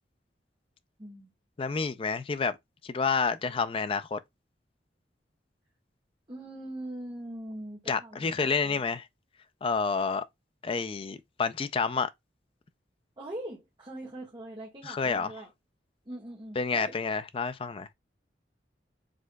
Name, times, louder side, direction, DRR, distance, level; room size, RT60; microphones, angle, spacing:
voice 1, 1.0-1.3 6.3-8.8 13.2-15.5 16.0-17.0, right 1 dB, 25° right, 1.5 m, -42 dB
voice 2, 1.6-2.6 2.8-4.2 7.9-9.1 9.6-10.2 10.6-12.1 14.8-15.3 16.6-17.9, left 5 dB, 30° left, 0.4 m, -29 dB
5.1 x 3.7 x 2.2 m
head